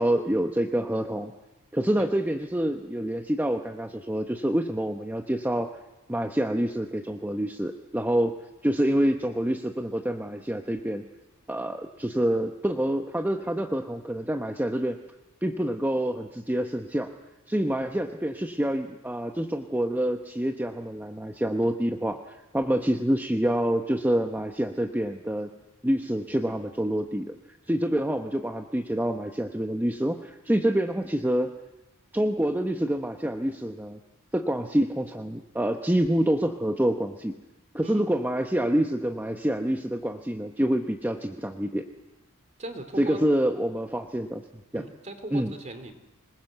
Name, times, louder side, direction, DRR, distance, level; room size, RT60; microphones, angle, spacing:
voice 1, 0.0-1.3 1.7-5.7 6.1-8.3 8.6-11.0 11.5-15.0 15.4-17.1 17.5-25.5 25.8-27.3 27.7-31.5 32.1-34.0 34.3-37.4 37.7-41.9 43.0-44.4 44.7-44.8 45.3-45.5, right 1 dB, 10° right, 4 dB, 0.9 m, -27 dB
voice 2, 42.6-43.2 44.7-45.9, right 2 dB, 30° right, 8 dB, 2.7 m, -39 dB
27.0 x 20.0 x 8.0 m, 0.98 s
head